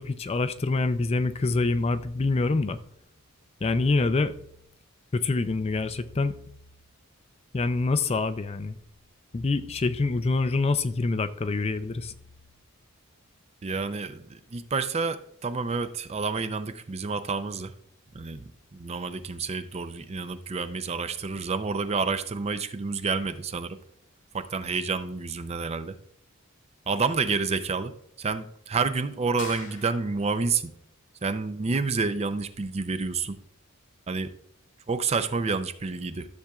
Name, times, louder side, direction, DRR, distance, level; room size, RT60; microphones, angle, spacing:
voice 1, 0.0-2.8 3.6-4.3 5.1-6.3 7.5-8.8 9.3-12.1, left 3 dB, 30° left, 0.4 m, -26 dB
voice 2, 13.6-17.7 18.1-23.8 24.3-26.0 26.9-27.9 28.2-30.7 31.2-33.4 34.1-34.3 34.9-36.3, right 4 dB, 30° right, 0.5 m, -29 dB
sound 1, 29.4-30.5, left 6 dB, 85° left, 1.8 m, -43 dB
13.0 x 6.9 x 2.3 m
head